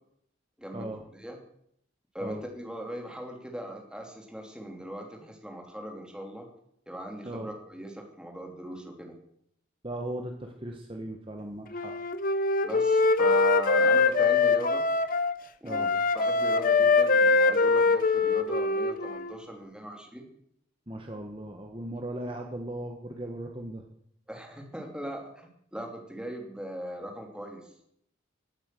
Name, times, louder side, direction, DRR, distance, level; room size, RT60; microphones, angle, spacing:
voice 1, 0.6-1.4 2.1-6.5 6.9-9.1 12.6-14.9 15.6-15.9 16.1-20.3 24.3-27.7, equal, 5° right, 2 dB, 2.8 m, -39 dB
voice 2, 9.8-11.9 15.6-15.9 20.9-23.8, right 1 dB, 25° right, 3 dB, 1.3 m, -37 dB
Wind instrument woodwind instrument, 11.7-15.4 15.7-19.3, left 4 dB, 45° left, 0.9 m, -23 dB
17.0 x 8.9 x 7.6 m, 0.71 s
head